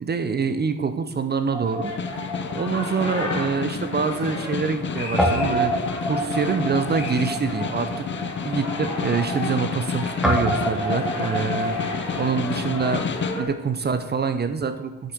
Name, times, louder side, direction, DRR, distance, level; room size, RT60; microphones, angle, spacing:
voice 1, 0.0-2.2 2.5-8.1 8.4-11.8 12.2-13.0 13.3-15.1, right 5 dB, 35° right, 9 dB, 0.8 m, -25 dB
Guitar, 1.5-3.9 4.2-4.3 5.2-13.0, equal, ahead, 1.7 m, -29 dB
Snare drum, 1.6-13.5, left 6 dB, 40° left, 0.7 m, -31 dB
sound 1, 1.8-13.4, left 2 dB, 55° left, 3.3 m, -34 dB
8.1 x 6.7 x 6.2 m, 1.2 s
cardioid pair, 90°, 30 cm